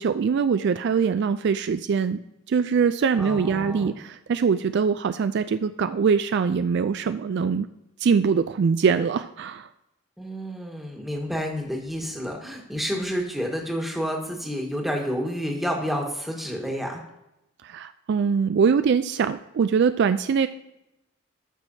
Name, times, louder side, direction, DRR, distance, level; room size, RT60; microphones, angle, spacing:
voice 1, 0.0-2.2 2.5-7.7 8.0-9.7 17.6-20.5, right 6 dB, 55° right, 11 dB, 0.3 m, -23 dB
voice 2, 3.2-3.9 10.2-17.0, equal, ahead, 0 dB, 1.5 m, -29 dB
13.5 x 6.2 x 2.7 m, 0.88 s
head